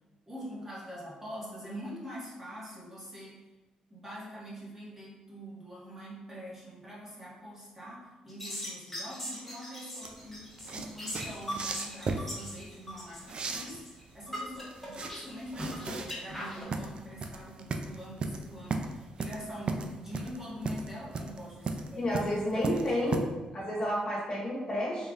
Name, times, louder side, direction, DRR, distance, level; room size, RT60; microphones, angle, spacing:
voice 1, 0.3-3.4 3.9-22.2 22.5-23.2, equal, 15° right, -7 dB, 1.3 m, -44 dB
sound 1, 8.3-16.6, equal, 5° left, 1.2 m, -40 dB
sound 2, 10.0-23.2, right 4 dB, 45° right, 0.3 m, -36 dB
voice 2, 22.0-23.3 23.5-25.1, left 1 dB, 40° left, -5 dB, 1.4 m, -30 dB
3.8 x 3.1 x 2.4 m, 1.2 s
cardioid pair, 80°, 2 cm